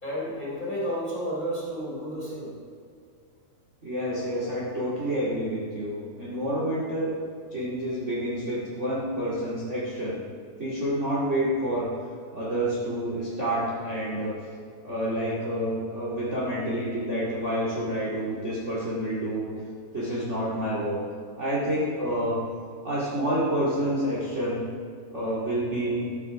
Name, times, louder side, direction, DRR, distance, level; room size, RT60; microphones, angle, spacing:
voice 1, 0.0-2.5, equal, 15° left, -6 dB, 3.3 m, -31 dB
voice 2, 3.8-7.1 7.5-10.2 10.6-11.9 12.3-14.4 14.8-19.5 19.9-21.0 21.4-22.4 22.8-24.7 25.1-26.1, right 1 dB, 25° right, -6 dB, 2.0 m, -28 dB
13.5 x 9.9 x 4.7 m, 2.3 s
omnidirectional pair, 3.9 m